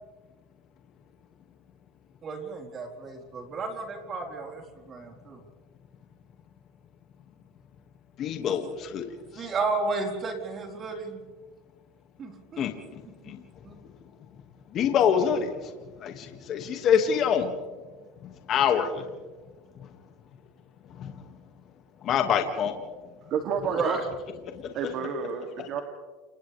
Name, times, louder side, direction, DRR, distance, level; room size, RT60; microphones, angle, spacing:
voice 1, 2.2-5.4 8.4-8.5 9.3-11.2 12.2-12.6 13.0-13.4 13.6-13.8 23.7-24.0, right 3 dB, 35° right, 1 dB, 4.5 m, -33 dB
voice 2, 8.2-9.1 9.4-9.5 12.6-13.4 14.7-15.7 16.0-17.5 18.2-19.1 19.8-19.9 21.0-21.2 22.0-22.8 24.5-24.7, left 7 dB, 45° left, 5 dB, 2.2 m, -26 dB
voice 3, 23.3-24.0 24.7-25.8, right 6 dB, 50° right, 4 dB, 2.7 m, -30 dB
29.5 x 27.5 x 3.5 m, 1.4 s
supercardioid pair, 115°, 0 cm